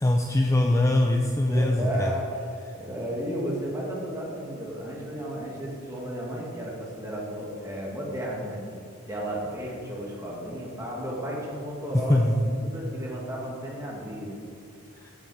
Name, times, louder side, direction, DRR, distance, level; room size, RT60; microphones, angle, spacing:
voice 1, 0.0-2.1 12.1-12.3, left 1 dB, 15° left, 2 dB, 0.5 m, -22 dB
voice 2, 1.5-2.4 2.8-8.6 9.1-14.3, equal, 15° right, -4 dB, 2.3 m, -33 dB
9.1 x 6.9 x 7.9 m, 2.4 s
head